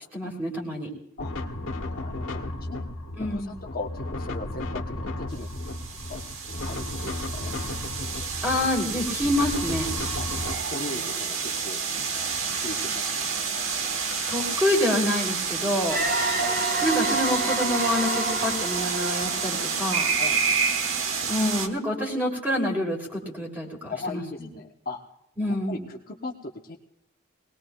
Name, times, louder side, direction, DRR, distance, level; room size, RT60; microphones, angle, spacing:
voice 1, 0.1-0.9 3.2-3.6 8.4-9.9 14.3-16.0 16.8-20.1 21.3-24.5 25.4-25.9, left 1 dB, 10° right, 0 dB, 3.0 m, -27 dB
sound 1, 1.2-10.5, left 2 dB, 85° left, 1.5 m, -34 dB
voice 2, 1.9-2.9 3.3-5.5 5.9-6.2 6.6-7.5 10.1-10.3 10.7-11.8 12.6-13.3 16.2-16.8 20.2-20.4 23.9-25.0 25.7-26.8, left 3 dB, 45° left, 1 dB, 0.9 m, -38 dB
sound 2, 5.4-21.7, right 5 dB, 75° right, 1.2 m, -29 dB
sound 3, 15.9-20.5, right 2 dB, 50° right, 2.9 m, -29 dB
21.0 x 19.0 x 2.3 m, 0.87 s
head